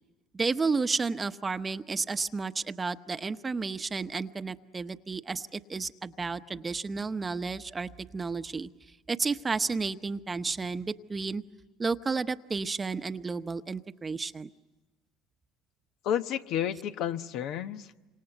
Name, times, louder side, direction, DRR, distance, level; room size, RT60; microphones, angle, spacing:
voice 1, 0.3-8.7 9.1-11.4 11.8-14.5, right 4 dB, 25° right, 11 dB, 1.0 m, -32 dB
voice 2, 16.0-18.1, left 10 dB, 65° left, 9 dB, 1.1 m, -31 dB
27.5 x 25.5 x 8.0 m, 1.1 s
supercardioid pair, 85°, 0 cm